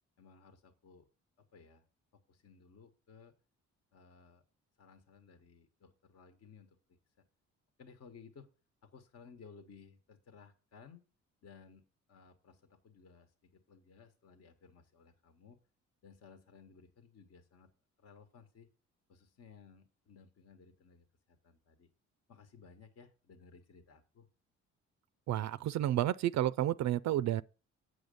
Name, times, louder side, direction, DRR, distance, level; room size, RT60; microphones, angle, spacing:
voice 1, 0.2-1.1 1.4-1.8 2.1-3.3 3.9-4.4 4.8-7.3 7.8-8.5 8.8-11.0 11.4-15.6 16.0-17.7 18.0-18.7 19.1-21.9 22.3-24.3, left 5 dB, 55° left, 1.2 m, -59 dB
voice 2, 25.3-27.4, right 12 dB, 65° right, 0.4 m, -31 dB
7.9 x 6.5 x 5.2 m
cardioid pair, 90°, 30 cm